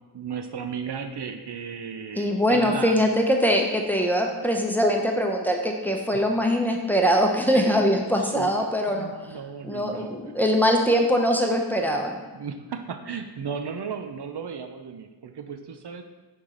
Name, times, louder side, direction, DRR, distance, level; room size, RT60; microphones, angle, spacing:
voice 1, 0.1-3.0 7.5-7.8 8.2-10.5 12.3-16.0, right 6 dB, 70° right, 7 dB, 0.5 m, -35 dB
voice 2, 2.2-9.1 9.6-12.2, equal, 5° left, 1 dB, 0.7 m, -22 dB
5.5 x 4.7 x 3.7 m, 1.2 s
wide cardioid pair, 50°, 42 cm